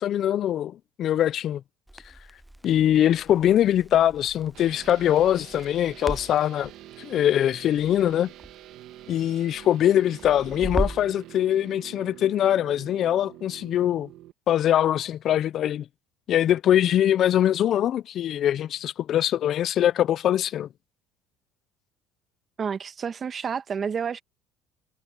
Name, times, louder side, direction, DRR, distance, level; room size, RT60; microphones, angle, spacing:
voice 1, 0.0-1.6 2.6-6.7 7.0-8.3 9.1-14.1 14.5-15.8 16.3-20.7, left 11 dB, 55° left, 0.5 m, -22 dB
Crackle, 1.9-11.2, right 1 dB, 5° right, 0.4 m, -37 dB
sound 1, 4.5-14.3, right 14 dB, 65° right, 1.8 m, -46 dB
voice 2, 22.6-24.2, right 6 dB, 35° right, 1.3 m, -30 dB
supercardioid pair, 100°, 0 cm